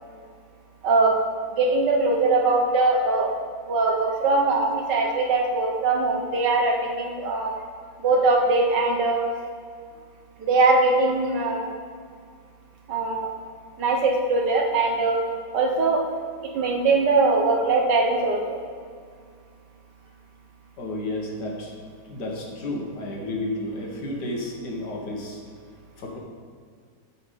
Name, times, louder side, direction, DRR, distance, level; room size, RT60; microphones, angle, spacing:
voice 1, 0.8-1.2 1.6-3.3 3.7-7.6 8.0-9.2 10.4-11.7 12.9-13.3 13.8-15.2 15.5-16.0 16.5-18.6, right 3 dB, 85° right, 1 dB, 1.8 m, -21 dB
voice 2, 20.8-21.7 22.1-25.4 26.0-26.2, left 1 dB, 75° left, -1 dB, 2.0 m, -31 dB
7.5 x 5.7 x 6.8 m, 2.1 s
omnidirectional pair, 1.8 m